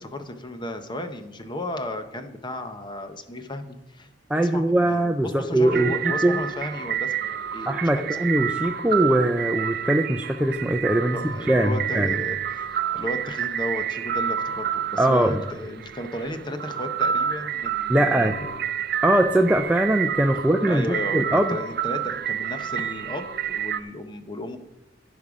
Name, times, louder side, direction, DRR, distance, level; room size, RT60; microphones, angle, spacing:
voice 1, 0.0-4.1 4.3-8.1 11.0-12.7 12.9-18.6 20.7-24.6, left 1 dB, 25° left, 7 dB, 0.9 m, -34 dB
voice 2, 4.3-6.4 7.6-12.1 15.0-15.4 17.9-18.3 19.0-21.6, right 1 dB, 10° right, 4 dB, 0.4 m, -21 dB
sound 1, 5.6-23.8, right 9 dB, 55° right, 0.6 m, -29 dB
15.5 x 5.5 x 4.9 m, 0.93 s
head